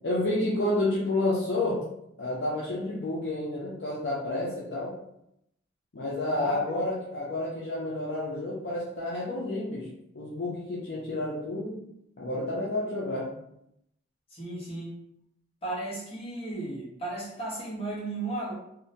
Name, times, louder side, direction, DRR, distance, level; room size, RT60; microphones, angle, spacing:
voice 1, 0.0-1.8 2.2-4.9 5.9-9.9 10.1-11.8 12.2-13.3, left 2 dB, 60° left, -6 dB, 0.5 m, -30 dB
voice 2, 14.3-14.9 15.6-18.5, right 2 dB, 30° left, -7 dB, 1.0 m, -35 dB
2.7 x 2.1 x 2.7 m, 0.78 s
head